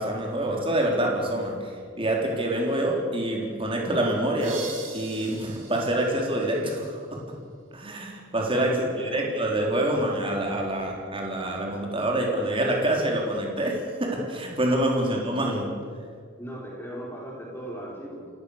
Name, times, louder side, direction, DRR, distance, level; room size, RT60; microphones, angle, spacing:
voice 1, 0.0-7.2 7.7-15.7, right 1 dB, 25° right, 0 dB, 4.1 m, -26 dB
sound 1, 4.4-7.1, right 4 dB, 70° right, 6.6 m, -42 dB
voice 2, 8.6-9.3 16.4-18.3, equal, 10° left, -3 dB, 4.9 m, -37 dB
29.5 x 17.5 x 6.9 m, 2.1 s
head